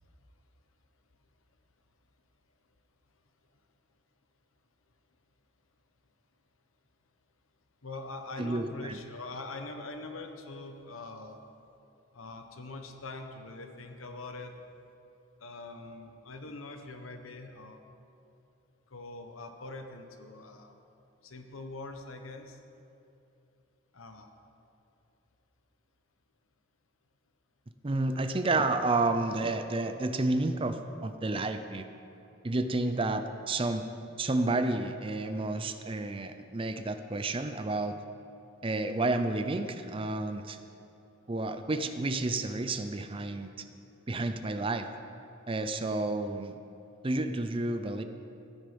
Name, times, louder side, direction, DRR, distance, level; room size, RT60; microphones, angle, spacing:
voice 1, 7.8-11.4 12.1-14.5 15.4-17.8 18.9-20.7 21.2-22.6 23.9-24.3, left 2 dB, 80° left, 5 dB, 1.1 m, -43 dB
voice 2, 8.4-9.0 27.8-31.9 32.4-33.8 34.2-38.0 38.6-40.6 41.3-43.5 44.1-44.9 45.5-46.5 47.0-48.0, right 2 dB, 25° right, 9 dB, 0.5 m, -30 dB
13.5 x 9.9 x 5.2 m, 2.8 s
head